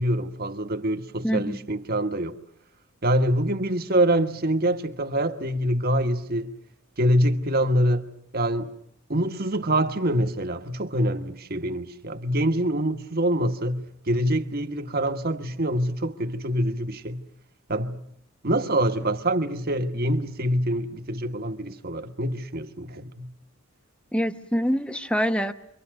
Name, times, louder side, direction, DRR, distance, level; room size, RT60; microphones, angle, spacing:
voice 1, 0.0-2.4 3.0-6.5 7.0-8.1 8.3-8.7 9.1-17.3 17.7-18.1 18.4-23.3, right 1 dB, 45° right, 1.5 m, -25 dB
voice 2, 1.2-1.6 24.1-25.5, equal, 5° left, 0.9 m, -25 dB
29.0 x 24.0 x 6.6 m
head